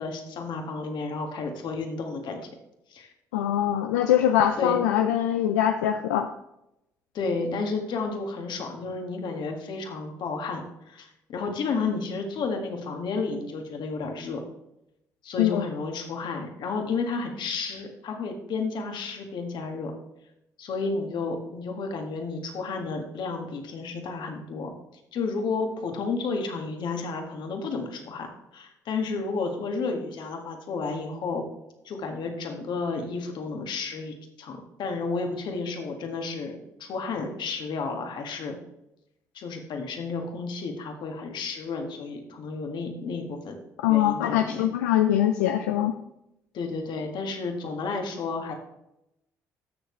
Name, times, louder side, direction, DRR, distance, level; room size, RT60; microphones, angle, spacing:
voice 1, 0.0-2.5 2.9-3.1 4.6-4.9 7.1-14.4 15.2-19.9 20.6-24.7 25.1-28.3 28.5-31.4 31.9-38.6 39.3-43.5 43.9-44.6 46.5-48.5, left 4 dB, 60° left, 3 dB, 1.8 m, -32 dB
voice 2, 3.3-6.3 15.4-15.6 43.8-45.9, left 11 dB, 85° left, 7 dB, 0.4 m, -23 dB
14.0 x 6.5 x 3.3 m, 0.86 s
hypercardioid pair, 50°, 9 cm